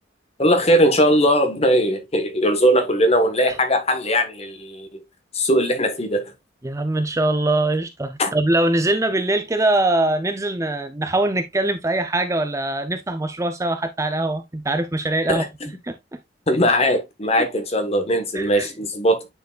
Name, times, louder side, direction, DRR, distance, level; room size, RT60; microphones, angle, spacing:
voice 1, 0.4-4.9 5.3-6.3 8.2-8.3 15.3-15.5 16.5-19.3, equal, 35° left, 1.4 m, -19 dB
voice 2, 6.6-15.4 15.8-16.0 17.4-17.5 18.3-18.7, right 2 dB, 15° right, 0.5 m, -22 dB
9.2 x 4.7 x 2.4 m
head